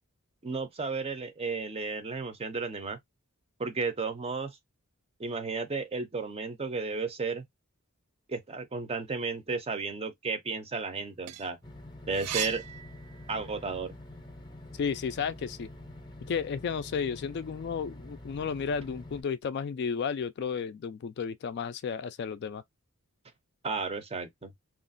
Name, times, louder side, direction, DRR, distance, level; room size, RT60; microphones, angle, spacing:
voice 1, 0.4-3.0 3.6-4.6 5.2-7.4 8.3-11.6 12.1-12.6 13.3-13.9 23.6-24.5, right 4 dB, 25° right, 0.5 m, -33 dB
sound 1, 11.0-13.7 14.1-15.5, right 13 dB, 85° right, 0.3 m, -39 dB
sound 2, 11.6-19.2, left 1 dB, 20° left, 0.6 m, -47 dB
voice 2, 14.7-15.7 16.3-22.6, left 6 dB, 50° left, 0.3 m, -33 dB
2.9 x 2.4 x 2.5 m
head